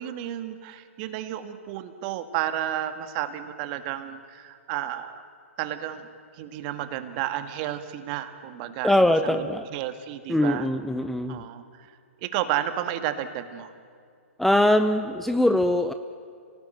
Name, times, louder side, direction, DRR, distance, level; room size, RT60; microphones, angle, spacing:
voice 1, 0.0-5.2 5.6-6.1 6.4-8.9 9.2-9.4 9.7-10.7 11.3-11.6 12.2-13.7, right 12 dB, 40° right, 10 dB, 1.8 m, -32 dB
voice 2, 8.8-9.7 10.3-11.4 14.4-15.9, left 1 dB, ahead, 9 dB, 0.7 m, -22 dB
28.0 x 18.5 x 9.1 m, 2.2 s
hypercardioid pair, 125°, 8 cm